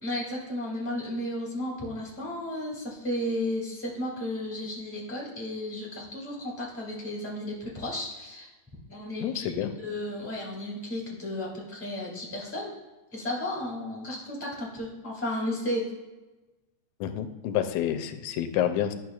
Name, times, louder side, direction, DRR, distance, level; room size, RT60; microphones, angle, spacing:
voice 1, 0.0-8.5 8.9-9.5 9.8-12.7 13.1-15.9, left 1 dB, 5° left, -4 dB, 1.9 m, -33 dB
voice 2, 9.2-9.7 17.0-18.9, left 10 dB, 90° left, 9 dB, 2.0 m, -28 dB
10.5 x 6.3 x 2.4 m, 1.1 s
omnidirectional pair, 3.3 m